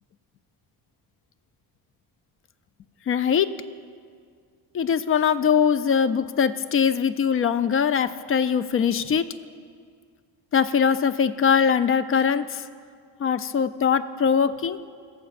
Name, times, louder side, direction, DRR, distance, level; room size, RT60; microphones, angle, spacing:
voice 1, 3.1-3.5 4.7-9.3 10.5-12.6 13.2-14.8, left 7 dB, 30° left, 14 dB, 0.4 m, -22 dB
18.5 x 7.1 x 2.5 m, 2.1 s
hypercardioid pair, 50°, 46 cm